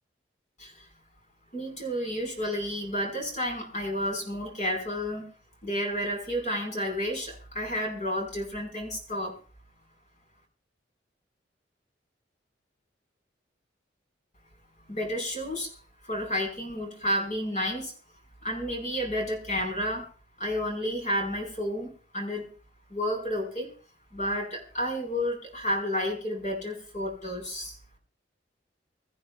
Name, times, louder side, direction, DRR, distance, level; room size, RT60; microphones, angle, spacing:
voice 1, 1.5-5.3 5.6-9.4 14.9-15.7 16.0-17.9 18.4-20.1 20.4-22.5 22.9-23.7 24.1-27.8, equal, 45° left, 2 dB, 4.9 m, -31 dB
25.5 x 14.0 x 2.4 m, 0.39 s
head